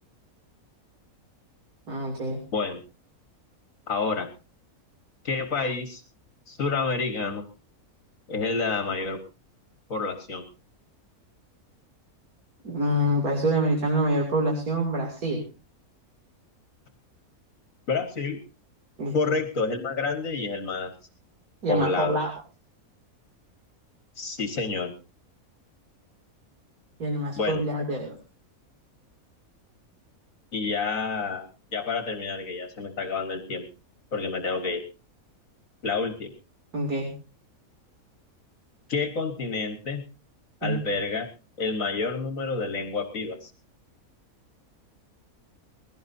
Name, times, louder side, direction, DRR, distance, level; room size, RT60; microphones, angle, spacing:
voice 1, 1.9-2.4 12.6-15.4 19.0-19.1 21.6-22.3 27.0-28.2 36.7-37.1 40.6-40.8, right 1 dB, 85° right, 0 dB, 3.2 m, -26 dB
voice 2, 3.9-4.3 5.2-6.0 6.5-7.5 8.3-9.2 9.9-10.4 17.9-18.4 19.1-20.9 21.7-22.2 24.1-24.9 27.4-27.6 30.5-31.5 31.7-33.7 34.1-34.8 35.8-36.3 38.9-40.0 40.6-41.3 41.6-43.5, left 4 dB, 65° left, 7 dB, 1.7 m, -28 dB
21.0 x 17.0 x 2.7 m, 0.33 s
omnidirectional pair, 1.5 m